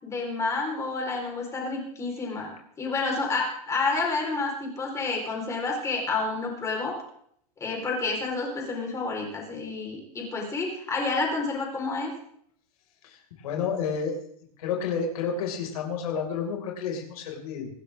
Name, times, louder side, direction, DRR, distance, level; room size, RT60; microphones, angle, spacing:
voice 1, 0.0-2.5 2.8-6.9 7.6-12.1, left 3 dB, 15° left, 0 dB, 4.7 m, -29 dB
voice 2, 13.0-14.2 14.6-17.7, left 6 dB, 70° left, 1 dB, 5.7 m, -30 dB
26.0 x 12.5 x 3.7 m, 0.65 s
supercardioid pair, 155°, 20 cm